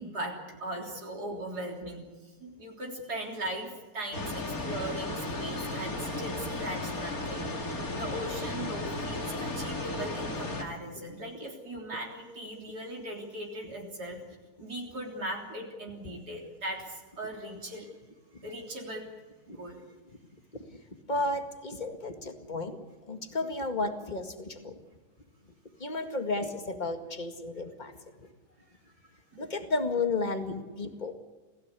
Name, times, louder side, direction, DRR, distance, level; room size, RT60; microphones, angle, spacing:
voice 1, 0.0-14.2 14.6-17.9 18.4-19.1 19.5-19.8 29.0-29.5, right 1 dB, 65° right, -1 dB, 4.1 m, -39 dB
sound 1, 4.1-10.6, left 2 dB, 55° left, 3.3 m, -34 dB
voice 2, 21.1-22.8 23.1-24.8 25.8-28.3 29.4-31.1, left 3 dB, 25° left, 6 dB, 2.1 m, -33 dB
28.0 x 17.0 x 8.4 m, 1.3 s
omnidirectional pair, 1.8 m